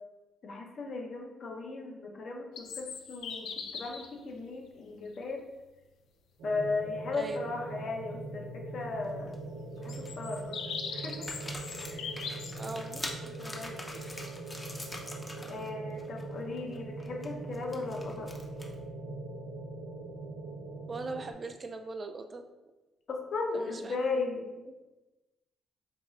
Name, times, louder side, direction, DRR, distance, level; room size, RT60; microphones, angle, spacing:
voice 1, 0.4-5.4 6.4-9.4 9.8-10.6 10.8-11.3 11.9-12.1 13.4-13.8 15.5-18.3 23.1-24.4, left 3 dB, 55° left, 1 dB, 0.7 m, -36 dB
sound 1, 2.6-4.1 5.2-5.3 9.9-12.6, left 6 dB, 80° left, 0.4 m, -40 dB
sound 2, 6.4-21.3, right 2 dB, 90° right, 0.6 m, -42 dB
sound 3, 8.9-9.3 9.8-10.4 11.0-15.7 15.9-16.2 16.6-18.9, left 1 dB, 20° left, 0.6 m, -44 dB
voice 2, 12.6-13.3 13.9-14.2 20.9-22.4 23.5-24.0, right 3 dB, 35° right, 7 dB, 0.3 m, -40 dB
4.6 x 3.0 x 2.4 m, 1.1 s
cardioid pair, 90°, 0 cm